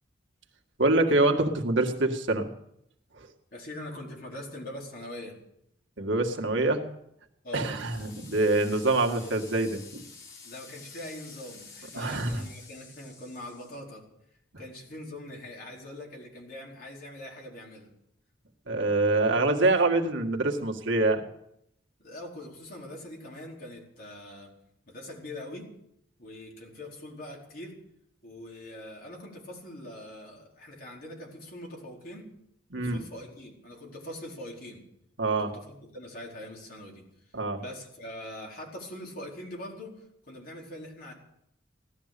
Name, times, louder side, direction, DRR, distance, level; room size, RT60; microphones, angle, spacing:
voice 1, 0.8-2.5 6.0-6.8 7.5-10.0 11.9-12.4 18.7-21.2 32.7-33.0 35.2-35.5 37.3-37.6, right 2 dB, 75° right, 2 dB, 1.9 m, -25 dB
voice 2, 3.5-5.3 7.4-7.8 10.4-14.0 14.6-17.9 22.0-24.5 24.9-25.7 26.2-27.8 28.2-32.3 32.7-34.8 35.4-41.1, left 1 dB, 50° left, -1 dB, 4.3 m, -43 dB
sound 1, 7.6-13.8, left 5 dB, 70° left, 4.8 m, -49 dB
16.5 x 12.5 x 6.8 m, 0.77 s
head